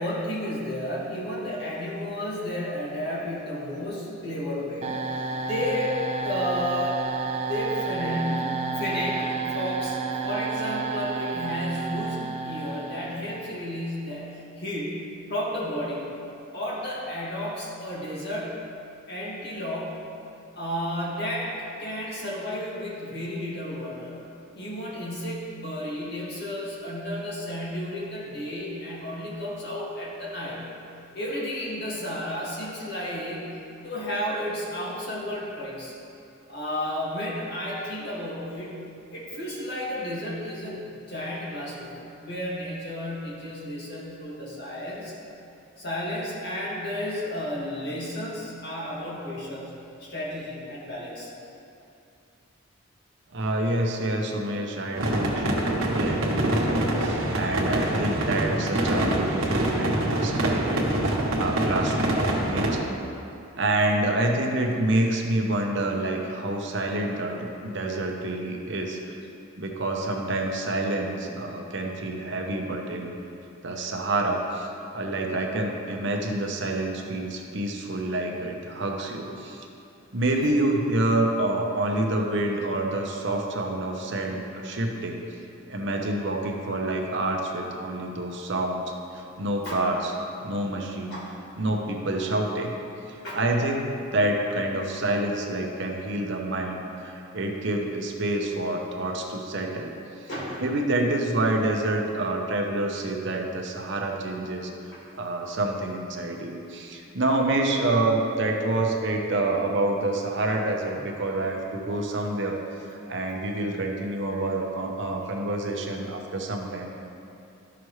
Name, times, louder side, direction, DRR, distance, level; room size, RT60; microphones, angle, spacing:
voice 1, 0.0-5.1 5.4-7.1 7.4-16.0 16.5-18.6 19.1-20.0 20.5-21.5 21.8-24.2 24.5-30.6 31.1-35.9 36.5-41.9 42.2-45.1 45.8-49.7 50.0-51.3 80.4-80.5 89.6-89.8 91.1-91.3 93.2-93.4 100.3-100.6 104.9-105.0 114.3-114.4, left 1 dB, 50° left, -6 dB, 2.0 m, -32 dB
sound 1, 4.8-13.7, right 4 dB, 30° right, 0.5 m, -31 dB
voice 2, 53.3-63.0 63.6-69.2 69.6-73.1 73.6-79.7 80.1-85.2 85.7-90.1 90.4-91.2 91.6-92.7 93.1-100.3 100.6-104.7 105.2-116.9, right 2 dB, 55° right, 1 dB, 0.8 m, -27 dB
sound 2, 54.9-62.8, right 1 dB, 85° right, 1.2 m, -25 dB
12.5 x 5.9 x 3.2 m, 2.7 s
head